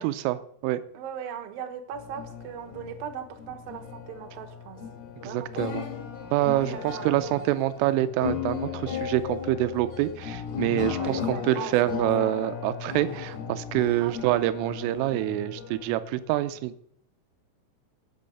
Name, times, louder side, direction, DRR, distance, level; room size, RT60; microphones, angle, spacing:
voice 1, 0.0-0.8 5.2-5.9 6.3-16.7, right 14 dB, 90° right, 12 dB, 3.3 m, -26 dB
voice 2, 0.9-4.8 5.2-5.7 6.7-7.5 11.0-12.5 14.0-14.4, right 8 dB, 65° right, 5 dB, 2.4 m, -39 dB
sound 1, 1.9-16.6, left 7 dB, 80° left, 4.7 m, -36 dB
12.0 x 6.2 x 7.0 m, 0.62 s
omnidirectional pair, 5.6 m